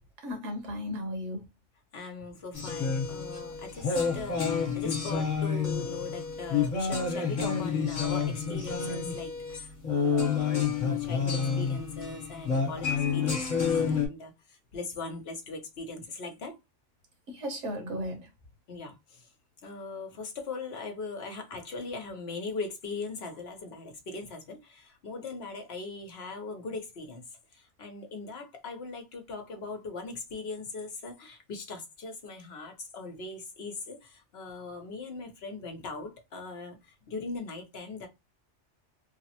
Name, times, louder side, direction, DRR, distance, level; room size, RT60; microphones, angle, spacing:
voice 1, 0.2-1.4 17.3-18.3, equal, 80° right, 1.4 m, -35 dB
voice 2, 1.9-16.6 18.7-19.3 19.6-27.2 27.5-38.1, left 3 dB, 60° left, 1.0 m, -40 dB
sound 1, 2.5-14.1, left 6 dB, 40° left, 1.2 m, -29 dB
3.3 x 2.0 x 2.8 m
omnidirectional pair, 1.2 m